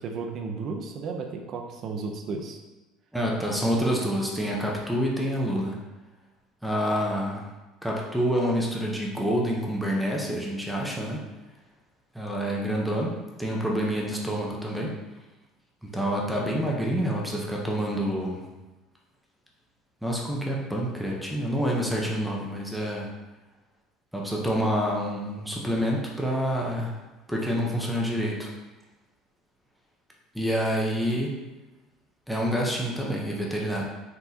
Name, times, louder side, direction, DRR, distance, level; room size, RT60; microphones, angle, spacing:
voice 1, 0.0-2.6, right 4 dB, 45° right, 3 dB, 0.6 m, -34 dB
voice 2, 3.1-5.8 6.6-7.4 7.8-11.2 12.1-14.9 15.8-18.5 20.0-23.1 24.1-27.0 27.3-28.5 30.3-31.3 32.3-33.8, equal, ahead, -2 dB, 0.7 m, -27 dB
4.5 x 3.9 x 2.8 m, 1.1 s
cardioid pair, 135°, 0 cm